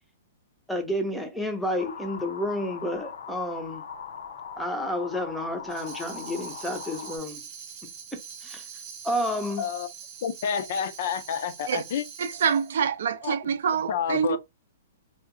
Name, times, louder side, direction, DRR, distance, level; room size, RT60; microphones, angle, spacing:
voice 1, 0.7-3.8 4.6-7.4 8.4-8.6 9.0-9.6, left 1 dB, ahead, 0.5 m, -30 dB
sound 1, 1.8-7.2, left 7 dB, 85° left, 0.7 m, -40 dB
Tambourine, 5.7-12.8, right 7 dB, 30° right, 0.8 m, -43 dB
voice 2, 9.6-9.9 10.2-12.1 13.2-13.3 13.9-14.4, left 7 dB, 50° left, 0.4 m, -29 dB
voice 3, 12.2-14.4, right 7 dB, 65° right, 0.5 m, -26 dB
2.8 x 2.4 x 3.6 m
hypercardioid pair, 170°, 0 cm